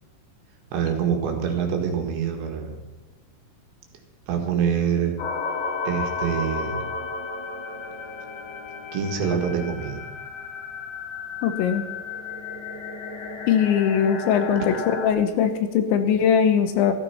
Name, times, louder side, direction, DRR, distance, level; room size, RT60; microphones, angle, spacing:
voice 1, 0.7-2.7 4.3-5.2 5.9-6.8 8.9-10.0, right 7 dB, 70° right, 3 dB, 3.9 m, -25 dB
sound 1, 5.2-15.1, left 4 dB, 60° left, 2.9 m, -33 dB
voice 2, 11.4-11.8 13.5-14.8 15.0-16.9, left 8 dB, 75° left, 8 dB, 3.2 m, -20 dB
15.0 x 13.5 x 5.7 m, 1.1 s
omnidirectional pair, 5.5 m